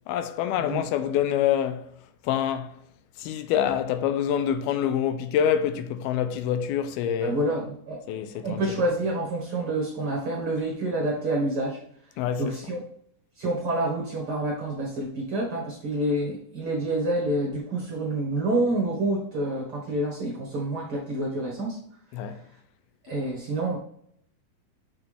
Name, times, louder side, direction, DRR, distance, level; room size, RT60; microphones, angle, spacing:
voice 1, 0.1-1.9 2.2-2.7 3.2-7.4 8.1-8.8 12.2-12.5 22.1-22.4, left 9 dB, 90° left, 2.5 m, -26 dB
voice 2, 7.2-8.0 8.4-11.8 12.4-12.8 13.4-21.8 23.0-23.8, right 1 dB, 55° right, 1.7 m, -28 dB
6.6 x 5.9 x 3.4 m
omnidirectional pair, 4.3 m